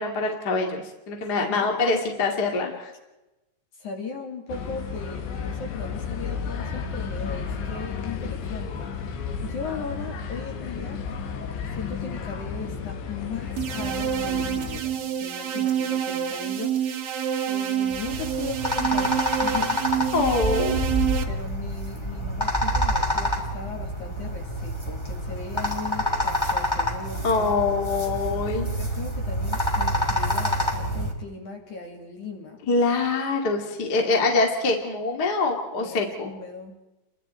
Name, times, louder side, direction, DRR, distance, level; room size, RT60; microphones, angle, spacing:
voice 1, 0.0-2.9 20.1-20.8 27.2-28.7 32.7-36.3, left 3 dB, 30° left, 1 dB, 2.0 m, -24 dB
voice 2, 1.4-1.7 3.8-11.0 11.7-17.0 17.5-20.1 20.4-20.8 21.3-27.4 28.8-32.6 35.8-36.8, left 4 dB, 50° left, 1 dB, 3.2 m, -38 dB
sound 1, 4.5-14.8, left 6 dB, 70° left, 4.0 m, -33 dB
sound 2, 13.6-21.2, right 9 dB, 60° right, 2.8 m, -27 dB
sound 3, 17.9-31.1, equal, 10° left, 2.1 m, -27 dB
30.0 x 23.0 x 4.5 m, 0.99 s
omnidirectional pair, 5.5 m